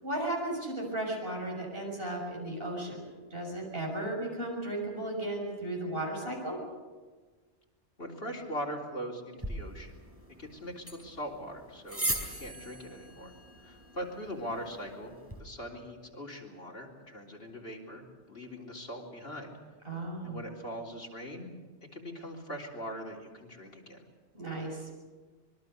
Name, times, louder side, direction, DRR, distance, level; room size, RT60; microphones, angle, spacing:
voice 1, 0.0-3.0 3.3-6.6 19.9-20.4 24.3-24.9, right 1 dB, 55° right, -1 dB, 6.9 m, -35 dB
voice 2, 8.0-9.9 10.4-12.1 12.3-13.3 13.6-19.5 20.2-21.5 21.9-24.0, equal, 60° left, -1 dB, 4.0 m, -41 dB
sound 1, 9.4-15.4, right 1 dB, 10° right, 4.6 m, -40 dB
25.5 x 22.0 x 6.7 m, 1.4 s
omnidirectional pair, 1.2 m